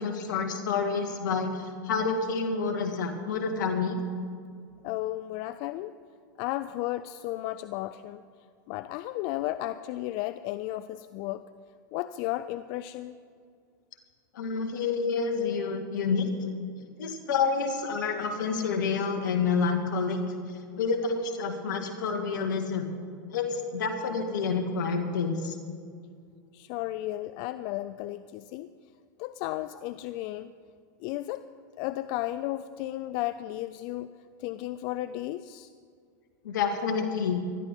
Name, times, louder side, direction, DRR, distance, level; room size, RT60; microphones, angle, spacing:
voice 1, 0.0-4.0 14.3-16.3 17.0-20.2 20.8-22.9 23.3-25.6 36.4-37.4, left 5 dB, 75° left, 6 dB, 1.9 m, -28 dB
voice 2, 4.8-5.9 6.4-8.2 8.7-11.4 11.9-13.2 26.5-28.7 29.2-30.5 31.0-31.5 31.8-34.1 34.4-35.7, left 15 dB, 55° left, 13 dB, 0.5 m, -34 dB
19.5 x 13.0 x 3.7 m, 2.2 s
hypercardioid pair, 100°, 10 cm